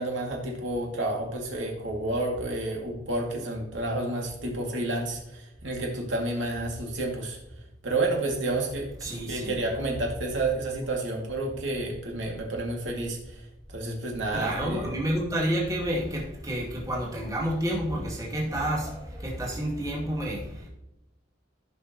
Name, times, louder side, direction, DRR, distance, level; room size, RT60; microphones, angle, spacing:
voice 1, 0.0-7.4 7.8-15.0, right 2 dB, 80° right, 0 dB, 2.3 m, -30 dB
voice 2, 9.0-9.6 14.3-20.8, equal, 20° right, -3 dB, 2.4 m, -30 dB
15.0 x 5.8 x 3.0 m, 0.88 s
head